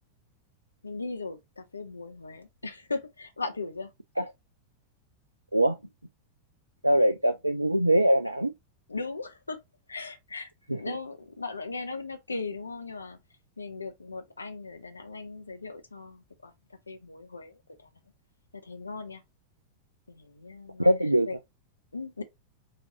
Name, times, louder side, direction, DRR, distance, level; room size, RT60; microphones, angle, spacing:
voice 1, 0.8-3.9 8.9-9.6 9.9-13.2 13.6-17.9 18.5-19.2 20.1-20.9 21.3-21.4 21.9-22.2, left 3 dB, 80° left, 0.7 m, -38 dB
voice 2, 6.8-8.5 10.7-11.0 20.8-21.3, right 1 dB, 85° right, 0.3 m, -23 dB
4.9 x 2.7 x 2.8 m
figure-of-eight pair, 90°, 0 cm